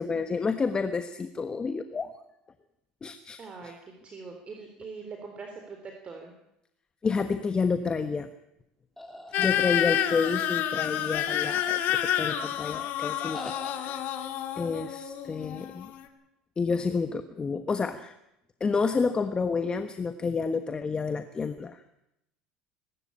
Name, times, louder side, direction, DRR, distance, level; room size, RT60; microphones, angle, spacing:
voice 1, 0.0-2.1 3.0-3.7 7.0-8.3 9.4-14.1 14.6-15.9 16.6-18.1 18.6-21.8, left 4 dB, 25° left, 10 dB, 1.2 m, -29 dB
voice 2, 3.4-3.8 4.0-6.3, right 4 dB, 35° right, 3 dB, 3.8 m, -42 dB
sound 1, 9.0-10.3 11.0-12.1 13.2-14.0, left 1 dB, 5° left, 4.3 m, -45 dB
sound 2, 9.3-16.1, left 11 dB, 65° left, 2.4 m, -29 dB
23.0 x 13.0 x 8.7 m, 0.84 s
supercardioid pair, 90°, 3 cm